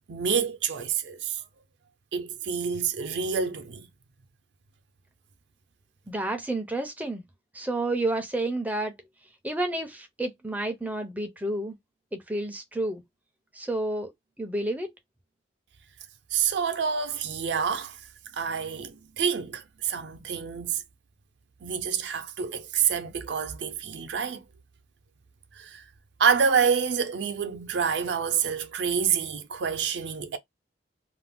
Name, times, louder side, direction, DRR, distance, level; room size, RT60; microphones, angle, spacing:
voice 1, 0.1-1.4 2.1-3.9 16.3-18.0 18.3-20.8 21.6-24.4 25.6-25.8 26.2-30.4, right 6 dB, 75° right, 0.5 m, -27 dB
voice 2, 6.1-7.2 7.5-8.9 9.4-11.8 12.1-13.0 13.5-14.1 14.4-14.9, right 1 dB, 10° right, 0.4 m, -30 dB
2.4 x 2.0 x 3.4 m
head